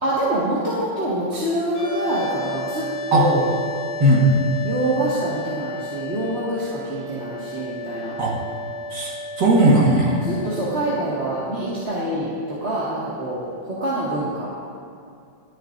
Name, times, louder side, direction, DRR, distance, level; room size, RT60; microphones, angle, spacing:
voice 1, 0.0-2.8 3.1-3.4 4.6-8.1 10.2-14.5, right 1 dB, 35° right, -9 dB, 2.1 m, -25 dB
sound 1, 1.7-11.8, left 1 dB, 10° left, 2.8 m, -33 dB
voice 2, 4.0-4.3 8.2-8.4 8.9-10.2, right 1 dB, 70° right, -3 dB, 2.3 m, -17 dB
26.5 x 9.2 x 2.6 m, 2.4 s
omnidirectional pair, 2.0 m